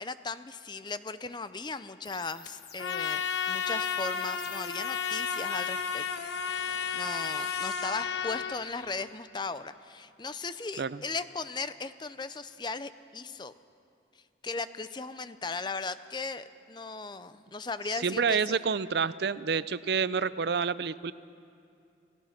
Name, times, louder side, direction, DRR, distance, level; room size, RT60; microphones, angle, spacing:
voice 1, 0.0-6.0 6.4-13.5 14.4-18.7, left 4 dB, 25° left, 13 dB, 0.5 m, -37 dB
sound 1, 2.0-9.0, left 7 dB, 60° left, 1.3 m, -47 dB
Trumpet, 2.8-8.6, left 6 dB, 75° left, 1.1 m, -32 dB
voice 2, 17.9-21.1, right 5 dB, 60° right, 16 dB, 0.5 m, -28 dB
29.5 x 17.0 x 5.9 m, 2.6 s
head